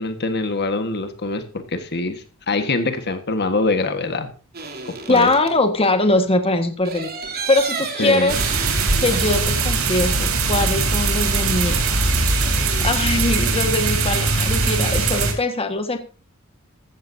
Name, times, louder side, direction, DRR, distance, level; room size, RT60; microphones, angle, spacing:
voice 1, 0.0-4.3 5.1-5.3 8.0-8.3, left 3 dB, 50° left, 8 dB, 1.5 m, -24 dB
sound 1, 4.5-5.6 6.8-9.7 10.0-10.1 11.7-13.3, right 4 dB, 45° right, 3.1 m, -32 dB
voice 2, 5.1-7.1 7.5-8.4 9.0-11.8 12.8-16.0, left 2 dB, 25° left, 6 dB, 1.6 m, -21 dB
sound 2, 8.3-15.3, right 3 dB, 70° right, 3.4 m, -20 dB
15.0 x 14.5 x 2.7 m, 0.34 s
head